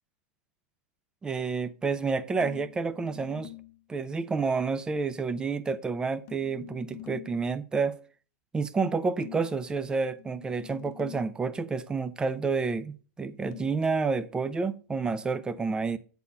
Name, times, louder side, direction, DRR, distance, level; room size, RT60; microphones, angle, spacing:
voice 1, 1.2-3.5 3.9-7.9 8.5-16.0, right 4 dB, 10° right, 0.5 m, -29 dB
sound 1, 2.4-3.8 6.3-7.5 9.2-11.4 13.5-13.8, left 17 dB, 45° left, 0.7 m, -46 dB
8.3 x 4.1 x 5.4 m
supercardioid pair, 145°, 8 cm